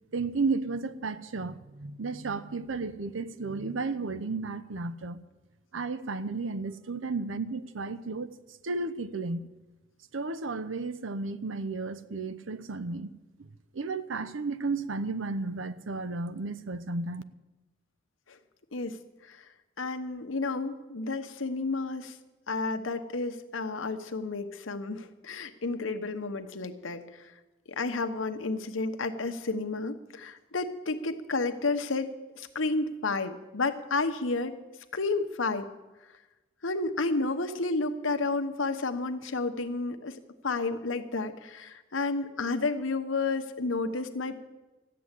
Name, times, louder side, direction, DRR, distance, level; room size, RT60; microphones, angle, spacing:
voice 1, 0.1-5.2 5.7-8.3 8.6-9.4 10.1-13.1 13.7-17.2, right 3 dB, 85° right, 0.7 m, -33 dB
voice 2, 19.8-22.1 22.5-27.0 27.8-34.6 34.9-35.7 36.6-40.2 40.4-44.4, left 3 dB, 90° left, 1.1 m, -31 dB
14.0 x 7.7 x 9.8 m
head